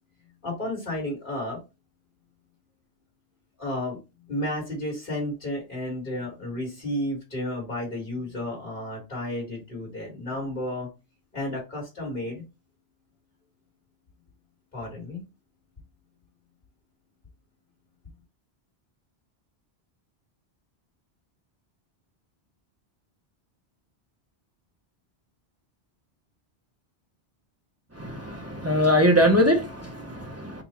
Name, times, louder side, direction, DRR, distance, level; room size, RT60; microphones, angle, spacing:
voice 1, 0.4-1.6 3.6-4.0 4.3-10.9 11.3-12.4 14.7-15.2, left 1 dB, 50° left, 1.8 m, -32 dB
voice 2, 27.9-30.6, equal, 15° right, 0.6 m, -22 dB
3.9 x 2.3 x 4.2 m
omnidirectional pair, 1.1 m